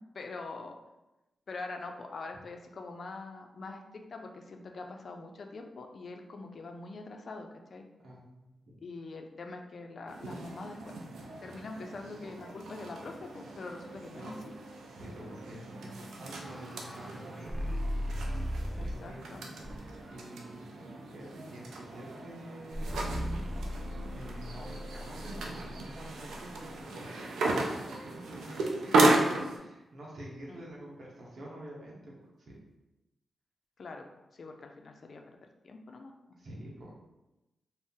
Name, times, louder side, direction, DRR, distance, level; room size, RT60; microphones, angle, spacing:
voice 1, 0.1-0.8 1.5-7.8 8.8-10.9 11.4-14.6 18.8-19.4 30.5-30.7 33.8-35.4 35.6-36.1, left 3 dB, 60° left, 4 dB, 0.4 m, -44 dB
voice 2, 8.0-8.8 14.1-14.4 14.9-17.8 18.7-22.9 24.1-32.6 36.3-36.9, right 1 dB, 65° right, -5 dB, 0.7 m, -48 dB
sound 1, 10.1-29.6, right 2 dB, 90° right, 0.4 m, -35 dB
sound 2, 15.8-19.1 19.6-20.1 22.7-26.8, equal, 5° left, 0.6 m, -38 dB
2.6 x 2.0 x 3.6 m, 0.98 s
cardioid pair, 60°, 0 cm